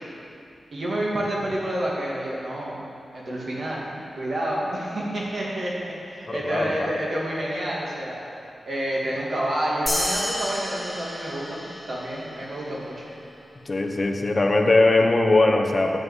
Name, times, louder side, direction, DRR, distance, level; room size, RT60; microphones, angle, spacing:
voice 1, 0.7-2.8 3.1-8.2 8.7-13.1, right 1 dB, 55° right, -5 dB, 2.4 m, -29 dB
voice 2, 6.3-6.9 13.7-16.0, left 2 dB, 30° left, 3 dB, 0.9 m, -20 dB
sound 1, 9.9-12.6, left 1 dB, 10° left, 2.0 m, -30 dB
10.5 x 5.6 x 8.2 m, 2.6 s
wide cardioid pair, 125°, 0 cm